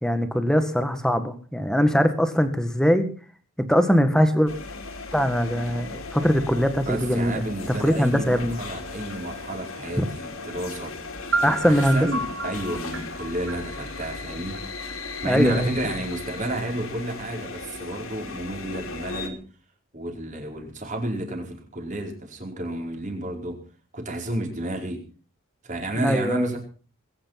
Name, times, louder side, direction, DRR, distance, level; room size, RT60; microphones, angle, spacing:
voice 1, 0.0-3.1 3.6-4.5 5.1-7.4 7.8-8.6 10.0-10.1 11.4-12.1 15.3-15.7 26.0-26.5, equal, 5° left, 9 dB, 1.8 m, -21 dB
sound 1, 4.5-19.3, left 3 dB, 75° left, 3.1 m, -37 dB
voice 2, 6.8-10.9 11.4-14.6 15.2-19.4 19.9-23.6 23.9-25.0 25.6-26.6, right 1 dB, 35° right, 2 dB, 4.9 m, -31 dB
sound 2, 11.3-15.2, right 2 dB, 65° right, 5.8 m, -31 dB
21.5 x 10.0 x 5.9 m, 0.40 s
head